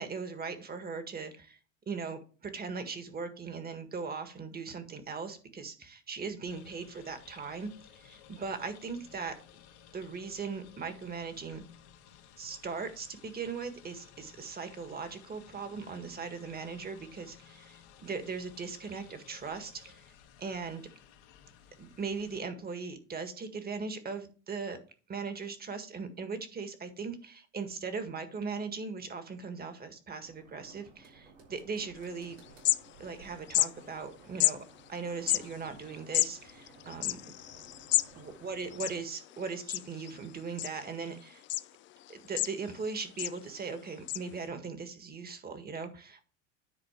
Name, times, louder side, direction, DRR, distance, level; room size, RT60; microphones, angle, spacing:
voice 1, 0.0-1.6 1.9-7.7 8.0-9.3 9.9-11.6 12.4-20.0 20.4-20.8 21.8-24.8 25.1-32.4 33.0-37.3 38.1-41.4 42.1-46.2, right 5 dB, 25° right, 8 dB, 1.7 m, -39 dB
sound 1, 6.5-22.4, left 9 dB, 75° left, 1.7 m, -57 dB
sound 2, 30.2-39.0, right 3 dB, 90° right, 3.7 m, -57 dB
sound 3, 32.1-32.2 32.4-33.2 33.5-33.7 34.4-34.6 35.2-38.1 38.4-38.5 38.7-39.3 39.7-40.1 40.6-41.1 41.5-41.6 42.1-42.8 43.2-43.4 44.1-44.2, left 15 dB, 35° left, 0.4 m, -30 dB
10.0 x 4.1 x 5.8 m, 0.38 s
supercardioid pair, 95°, 35 cm